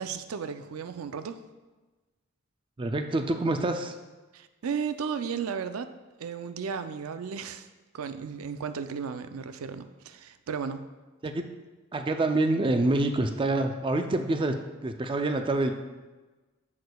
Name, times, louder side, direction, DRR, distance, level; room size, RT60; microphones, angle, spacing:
voice 1, 0.0-1.4 4.3-5.9 6.2-7.7 7.9-10.8, right 6 dB, 90° right, 10 dB, 0.4 m, -34 dB
voice 2, 2.8-3.9 11.2-11.5 11.9-14.6 14.8-15.7, right 2 dB, 25° right, 6 dB, 0.4 m, -26 dB
10.5 x 6.5 x 2.3 m, 1.2 s
head